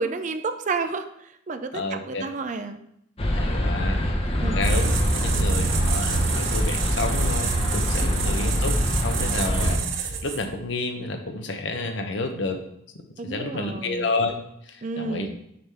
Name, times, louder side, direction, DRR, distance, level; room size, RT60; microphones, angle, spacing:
voice 1, 0.0-2.8 4.4-4.6 8.0-8.1 13.2-14.1 14.8-15.3, right 4 dB, 40° right, 9 dB, 0.4 m, -31 dB
voice 2, 1.7-2.2 3.3-4.0 4.5-12.6 12.9-14.3 14.7-15.3, left 3 dB, 65° left, 5 dB, 0.8 m, -30 dB
sound 1, 3.2-9.8, left 1 dB, 30° left, 0.7 m, -24 dB
sound 2, 4.6-10.6, right 6 dB, 80° right, 0.6 m, -28 dB
6.6 x 3.8 x 4.3 m, 0.76 s
head